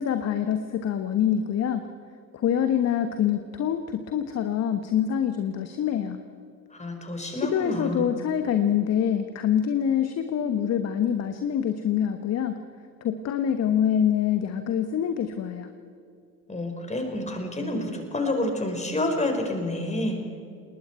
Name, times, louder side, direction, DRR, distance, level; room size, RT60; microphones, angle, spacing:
voice 1, 0.0-1.8 2.3-6.2 7.3-12.6 13.0-15.7, left 9 dB, 30° left, 9 dB, 1.2 m, -25 dB
voice 2, 6.7-8.1 16.5-20.2, left 1 dB, 15° left, 4 dB, 4.6 m, -28 dB
30.0 x 20.0 x 4.6 m, 2.4 s
figure-of-eight pair, 65°, 48 cm